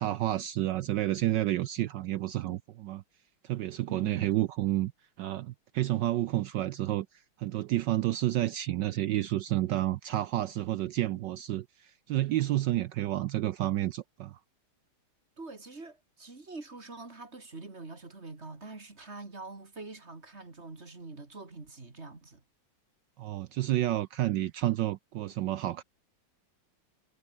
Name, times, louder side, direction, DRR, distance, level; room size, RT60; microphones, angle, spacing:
voice 1, 0.0-3.0 3.4-4.9 5.2-7.1 7.4-14.4 23.2-25.8, right 14 dB, 70° right, 1.1 m, -30 dB
voice 2, 3.9-4.4 15.4-22.4, right 3 dB, 30° right, 3.1 m, -45 dB
omnidirectional pair, 2.3 m